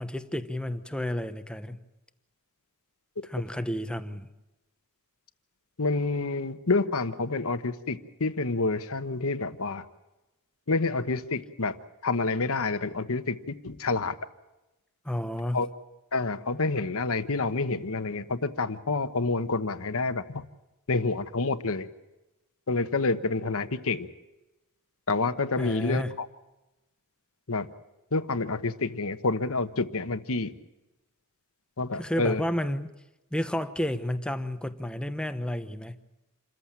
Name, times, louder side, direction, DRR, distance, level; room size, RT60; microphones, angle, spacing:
voice 1, 0.0-1.8 3.3-4.3 15.0-15.6 25.6-26.1 32.0-32.9 33.3-36.0, left 1 dB, 5° left, 9 dB, 1.0 m, -31 dB
voice 2, 5.8-9.8 10.7-11.8 12.0-14.2 15.5-15.7 16.1-20.4 20.9-21.9 22.7-24.1 25.1-26.3 27.5-27.7 28.1-30.5 31.8-32.4, left 3 dB, 70° left, 10 dB, 1.2 m, -28 dB
28.0 x 14.5 x 8.8 m, 1.0 s
head